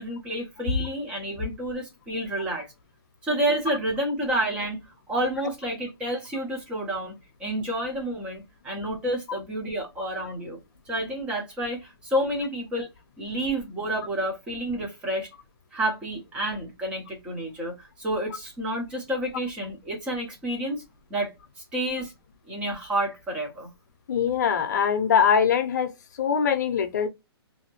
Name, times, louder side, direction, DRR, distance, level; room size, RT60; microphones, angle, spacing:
voice 1, 0.0-2.7 3.2-4.8 5.1-10.6 10.9-12.9 13.2-15.3 15.7-20.8 21.1-21.3 21.7-22.1 22.5-23.7, right 1 dB, 10° right, 0.6 m, -29 dB
voice 2, 24.1-25.9 26.2-27.1, left 7 dB, 45° left, 0.6 m, -22 dB
2.8 x 2.6 x 2.8 m
hypercardioid pair, 165°, 14 cm